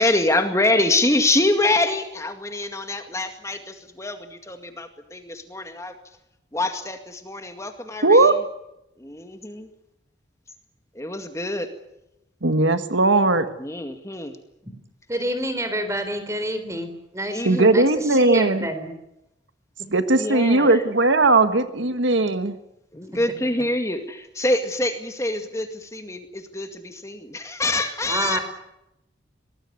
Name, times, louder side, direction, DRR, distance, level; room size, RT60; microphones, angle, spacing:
voice 1, 0.0-6.0 6.5-8.4 9.0-9.7 10.9-11.7 13.6-14.4 17.3-17.8 20.1-20.9 22.9-28.4, left 2 dB, 15° left, 6 dB, 2.1 m, -25 dB
voice 2, 8.0-8.3 12.4-13.5 17.4-18.7 19.9-22.6, right 2 dB, 80° right, 10 dB, 1.6 m, -18 dB
voice 3, 15.1-17.4 17.7-18.9 28.1-28.4, right 1 dB, 15° right, 9 dB, 3.9 m, -27 dB
24.0 x 19.0 x 9.5 m, 0.87 s
head